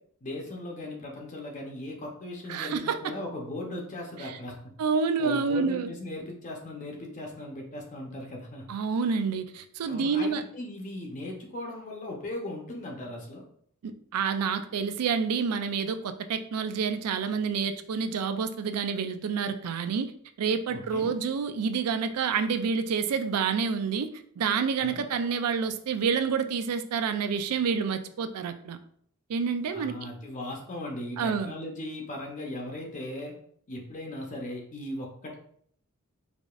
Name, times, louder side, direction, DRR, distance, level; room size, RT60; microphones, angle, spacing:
voice 1, 0.2-4.7 5.2-8.6 9.8-13.4 20.7-21.1 24.8-25.0 29.7-33.3 33.7-35.3, left 1 dB, 35° left, 0 dB, 0.6 m, -38 dB
voice 2, 2.5-3.0 4.2-4.3 4.8-5.9 8.7-10.4 13.8-20.1 20.4-24.1 24.4-28.8 29.3-30.1 31.2-31.5, right 5 dB, 90° right, 10 dB, 0.4 m, -28 dB
4.8 x 2.5 x 2.3 m, 0.63 s
head